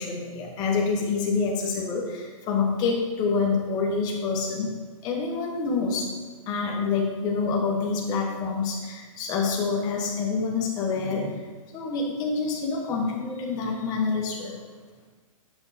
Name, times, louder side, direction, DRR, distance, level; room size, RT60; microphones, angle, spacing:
voice 1, 0.0-4.8 5.0-6.1 6.5-11.4 11.7-14.6, left 4 dB, 20° left, -1 dB, 1.2 m, -27 dB
8.1 x 5.6 x 4.2 m, 1.4 s
hypercardioid pair, 160°, 18 cm